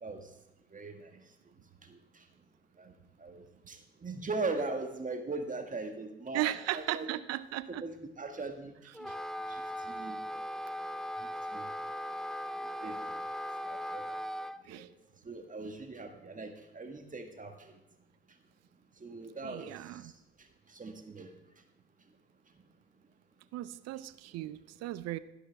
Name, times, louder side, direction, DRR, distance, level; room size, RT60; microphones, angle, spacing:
voice 1, 0.7-1.2 1.8-2.2 2.8-7.1 7.7-8.7 9.5-10.2 11.2-11.7 12.8-13.1 13.7-14.2 14.6-14.9 15.2-17.7 19.0-20.1 20.7-21.3, right 3 dB, 25° right, 5 dB, 1.8 m, -40 dB
voice 2, 6.3-7.8 9.0-9.1 14.7-14.9 19.4-20.1 23.5-25.2, right 15 dB, 60° right, 15 dB, 0.7 m, -36 dB
Wind instrument woodwind instrument, 8.9-14.6, equal, ahead, 0.5 m, -38 dB
12.5 x 11.5 x 3.5 m, 0.89 s
hypercardioid pair, 55°, 30 cm